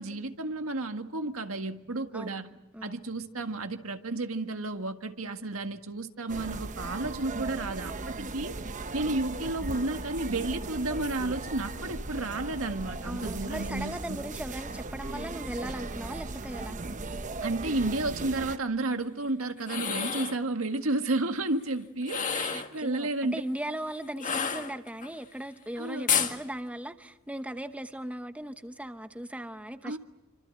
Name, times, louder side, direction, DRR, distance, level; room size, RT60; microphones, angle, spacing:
voice 1, 0.0-2.5 2.8-8.6 8.9-14.2 17.4-23.4 25.8-26.1 29.8-30.0, right 2 dB, 75° right, 7 dB, 1.8 m, -32 dB
voice 2, 2.1-2.5 2.7-3.0 13.0-16.8 22.5-30.0, right 1 dB, 5° right, 9 dB, 0.9 m, -38 dB
sound 1, 6.3-18.6, right 3 dB, 35° right, 1.0 m, -37 dB
sound 2, 19.6-20.4 22.0-22.7 24.2-25.1 26.1-26.4, left 7 dB, 40° left, 1.9 m, -29 dB
28.0 x 25.5 x 7.8 m, 0.89 s
head